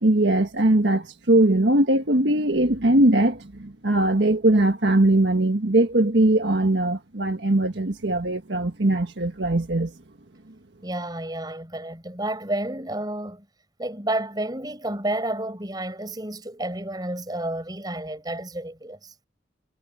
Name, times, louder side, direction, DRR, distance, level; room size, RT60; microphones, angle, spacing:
voice 1, 0.0-9.9, right 1 dB, 75° right, 1.6 m, -20 dB
voice 2, 10.8-13.5 13.8-19.1, right 1 dB, 20° right, 6.9 m, -30 dB
head